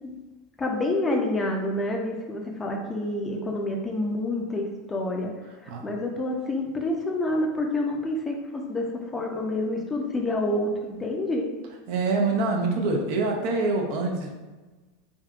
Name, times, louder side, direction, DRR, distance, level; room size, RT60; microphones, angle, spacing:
voice 1, 0.6-5.3 5.6-11.5, left 1 dB, 20° left, 1 dB, 0.5 m, -28 dB
voice 2, 11.9-14.3, right 3 dB, 55° right, 1 dB, 0.5 m, -25 dB
3.5 x 2.6 x 2.4 m, 1.2 s
figure-of-eight pair, 80°, 0 cm